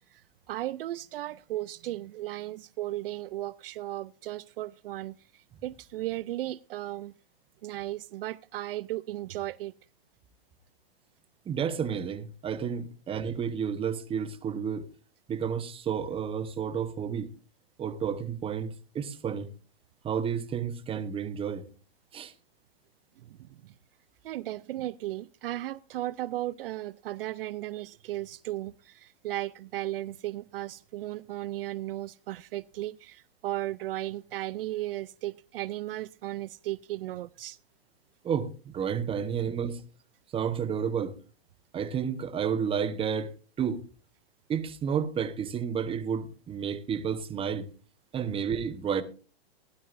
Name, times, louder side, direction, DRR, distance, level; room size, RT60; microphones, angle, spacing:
voice 1, 0.5-7.1 7.6-9.7 23.2-23.7 24.2-37.6, right 15 dB, 65° right, 0.5 m, -36 dB
voice 2, 11.4-14.9 15.3-17.3 17.8-19.5 20.0-21.7 22.1-22.3 38.2-39.8 40.3-41.2 41.7-43.8 44.5-47.7 48.1-49.0, right 7 dB, 20° right, 1.0 m, -31 dB
16.0 x 12.0 x 2.6 m
hypercardioid pair, 130°, 31 cm